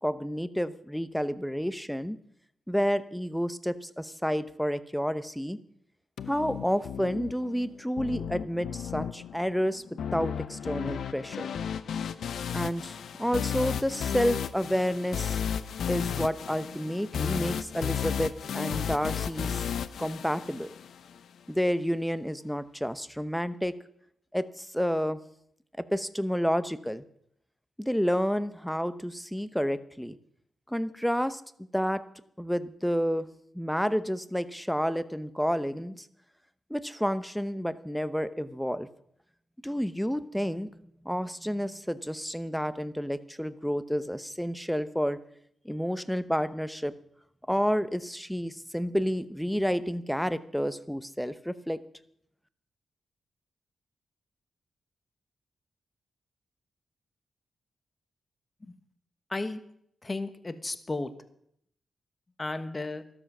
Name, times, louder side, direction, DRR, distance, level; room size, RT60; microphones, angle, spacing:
voice 1, 0.0-2.2 2.7-5.6 6.3-9.8 10.1-11.5 12.5-15.4 15.9-19.7 20.0-20.7 21.5-23.8 24.3-25.2 25.8-27.0 27.8-30.2 30.7-31.4 31.7-32.0 32.4-33.3 33.5-36.1 36.7-38.9 39.6-40.8 41.0-45.2 45.6-46.9 47.5-51.8, equal, ahead, 14 dB, 0.9 m, -30 dB
sound 1, 6.2-21.2, left 8 dB, 80° left, 0.7 m, -34 dB
voice 2, 59.3-59.6 60.0-61.1 62.4-63.0, left 2 dB, 25° left, 11 dB, 1.2 m, -33 dB
13.0 x 13.0 x 6.2 m, 0.69 s
cardioid pair, 90°, 0 cm